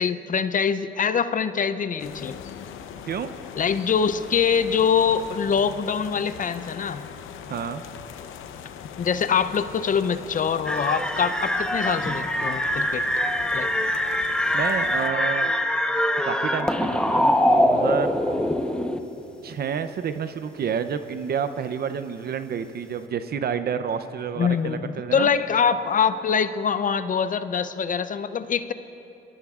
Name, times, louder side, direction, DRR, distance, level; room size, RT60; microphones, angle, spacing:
voice 1, 0.0-2.4 3.5-7.1 9.0-13.0 13.5-13.7 24.4-28.7, left 6 dB, 40° left, 12 dB, 0.5 m, -24 dB
sound 1, 2.0-15.1, left 8 dB, 85° left, 0.7 m, -40 dB
voice 2, 7.5-7.8 14.5-15.5 16.2-18.2 19.4-25.3, right 7 dB, 55° right, 10 dB, 0.6 m, -29 dB
sound 2, 10.6-19.0, left 1 dB, 5° left, 0.9 m, -23 dB
24.5 x 18.0 x 2.4 m, 2.8 s
cardioid pair, 90°, 20 cm